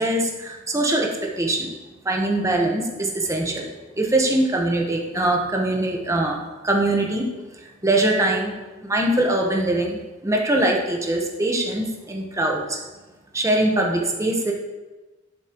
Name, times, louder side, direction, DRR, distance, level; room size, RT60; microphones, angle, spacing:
voice 1, 0.0-1.7 2.0-3.7 4.0-7.3 7.5-8.5 8.8-12.8 13.3-14.5, right 1 dB, 15° right, 0 dB, 1.1 m, -22 dB
11.5 x 6.9 x 3.0 m, 1.2 s
head